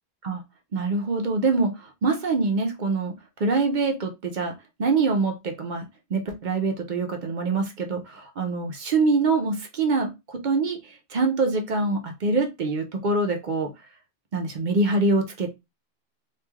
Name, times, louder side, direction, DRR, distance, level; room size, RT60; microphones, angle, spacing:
voice 1, 0.7-1.7 2.0-3.1 3.4-4.5 4.8-5.8 6.1-10.1 10.4-10.8 11.1-13.7 14.3-15.5, right 3 dB, 55° right, 4 dB, 0.7 m, -24 dB
3.1 x 2.4 x 2.3 m, 0.23 s
omnidirectional pair, 1.0 m